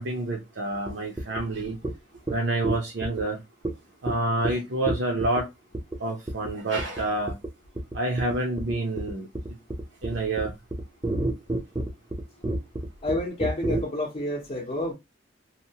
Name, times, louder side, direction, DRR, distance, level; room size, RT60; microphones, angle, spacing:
voice 1, 0.0-1.8 2.3-3.4 4.0-5.5 6.0-7.3 7.9-9.3 10.0-10.5, right 2 dB, 65° right, 0.6 m, -28 dB
sound 1, 0.9-1.0 1.2-1.4 1.8-1.9 2.3-2.4 2.6-3.2 3.6-3.7 4.1-4.2 4.4-4.5 4.9-5.4 5.7-6.0 6.3-6.5 6.8-7.0 7.3-7.5 7.8-13.8, right 2 dB, 15° right, 0.5 m, -29 dB
voice 2, 13.0-14.9, left 1 dB, 35° left, 0.7 m, -29 dB
2.8 x 2.1 x 2.7 m
head